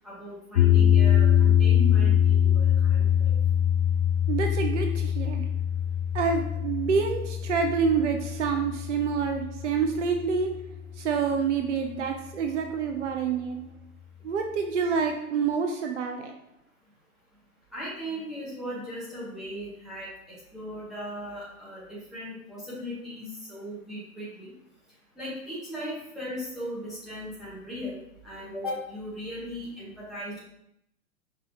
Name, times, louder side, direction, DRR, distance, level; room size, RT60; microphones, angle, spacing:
voice 1, 0.0-3.3 17.7-20.1 20.5-24.5 25.2-28.0 28.2-30.4, equal, ahead, -9 dB, 0.8 m, -37 dB
sound 1, 0.5-10.8, left 9 dB, 60° left, 0.5 m, -23 dB
voice 2, 4.3-5.4 6.1-10.5 11.0-13.6 14.2-16.3, right 5 dB, 55° right, 5 dB, 0.5 m, -27 dB
5.3 x 3.1 x 2.7 m, 0.78 s
figure-of-eight pair, 120°, 45 cm